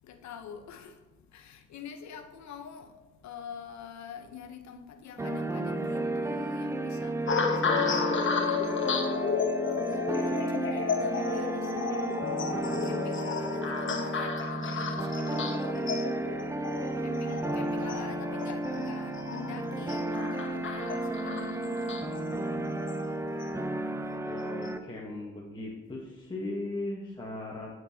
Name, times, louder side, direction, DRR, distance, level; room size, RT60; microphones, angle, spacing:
voice 1, 0.0-22.7 22.9-23.0 23.3-24.1, left 7 dB, 65° left, 0.8 m, -46 dB
sound 1, 5.2-24.8, right 2 dB, 10° right, 0.4 m, -33 dB
sound 2, 7.3-23.7 24.4-24.7, left 5 dB, 40° left, 0.9 m, -33 dB
voice 2, 24.2-27.7, left 2 dB, 15° left, 1.0 m, -38 dB
10.0 x 4.6 x 2.8 m
cardioid pair, 90°, 30 cm